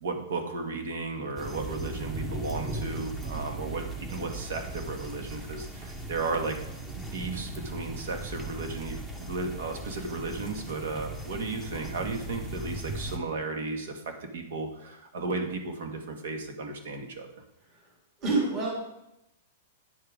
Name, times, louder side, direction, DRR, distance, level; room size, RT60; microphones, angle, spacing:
voice 1, 0.0-6.6 6.9-17.4, right 3 dB, 75° right, 4 dB, 1.8 m, -34 dB
sound 1, 1.4-13.2, right 2 dB, 10° right, 1.0 m, -38 dB
voice 2, 18.2-18.8, right 3 dB, 25° right, -2 dB, 2.4 m, -27 dB
9.9 x 5.9 x 5.0 m, 0.85 s
supercardioid pair, 160°, 0 cm